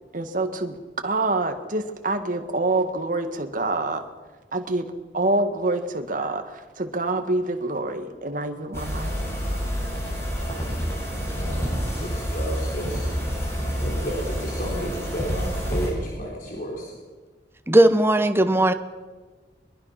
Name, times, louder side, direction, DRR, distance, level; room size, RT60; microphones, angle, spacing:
voice 1, 0.1-4.0 4.5-9.1, right 2 dB, 50° right, 7 dB, 1.8 m, -26 dB
sound 1, 8.7-15.9, equal, 15° left, 7.9 m, -28 dB
voice 2, 11.1-11.7 12.0-16.9, equal, 50° left, -2 dB, 4.4 m, -33 dB
voice 3, 17.7-18.7, right 1 dB, 15° right, 10 dB, 1.0 m, -17 dB
22.5 x 22.5 x 5.9 m, 1.3 s
head